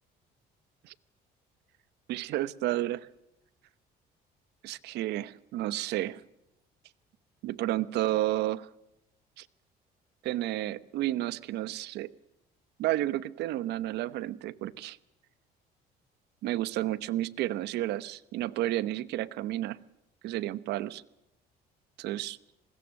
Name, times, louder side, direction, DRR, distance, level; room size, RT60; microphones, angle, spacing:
voice 1, 2.1-3.1 4.6-6.2 7.4-8.7 9.4-9.5 10.2-12.1 12.8-15.0 16.4-19.8 20.2-21.0 22.0-22.4, right 15 dB, 80° right, 17 dB, 1.0 m, -31 dB
26.5 x 20.5 x 6.4 m, 0.89 s
cardioid pair, 110°, 17 cm